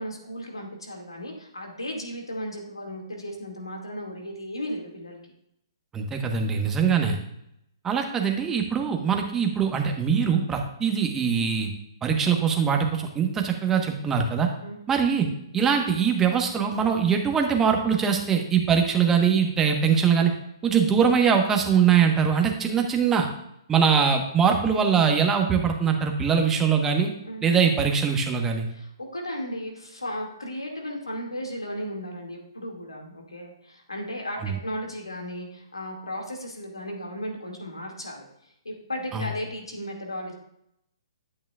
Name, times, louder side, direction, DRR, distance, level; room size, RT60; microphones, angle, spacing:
voice 1, 0.0-5.2 14.6-14.8 27.3-27.4 28.7-38.2 38.6-40.3, equal, 90° left, 1 dB, 2.2 m, -35 dB
voice 2, 5.9-7.2 7.8-11.7 12.0-14.5 14.9-15.3 15.5-20.3 20.6-23.3 23.7-27.1 27.4-28.7 34.4-34.6 39.1-39.3, right 7 dB, 15° right, 3 dB, 1.2 m, -22 dB
10.5 x 8.7 x 2.4 m, 0.77 s
figure-of-eight pair, 130°, 3 cm